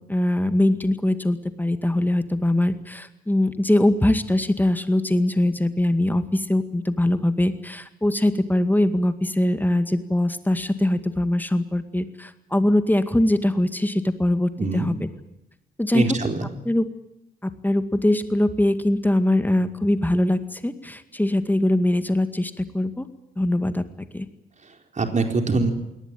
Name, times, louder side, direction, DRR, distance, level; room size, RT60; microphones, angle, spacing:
voice 1, 0.1-14.9 15.8-16.2 16.7-16.8 17.4-23.1 23.4-23.8 24.1-24.3, left 1 dB, 10° left, 10 dB, 2.1 m, -22 dB
voice 2, 14.6-15.0 15.9-16.5 24.6-25.7, right 3 dB, 35° right, 4 dB, 4.3 m, -24 dB
22.5 x 18.5 x 9.2 m, 0.88 s
hypercardioid pair, 40°, 20 cm